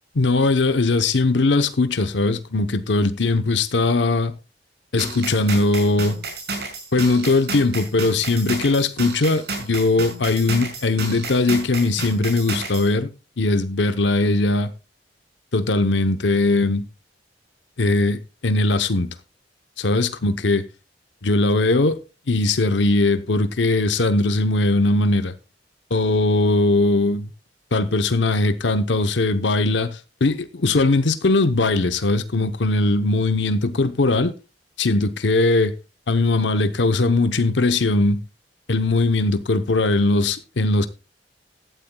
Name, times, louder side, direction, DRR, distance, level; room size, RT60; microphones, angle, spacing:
voice 1, 0.1-4.3 4.9-6.2 6.9-13.1 13.4-14.7 15.5-16.8 17.8-19.1 19.8-20.6 21.2-22.0 22.3-25.3 25.9-27.3 27.7-34.3 34.8-35.7 36.1-38.2 38.7-40.9, left 2 dB, 90° left, 0.9 m, -20 dB
sound 1, 5.0-12.9, right 3 dB, 65° right, 5.8 m, -31 dB
16.5 x 12.5 x 2.3 m
head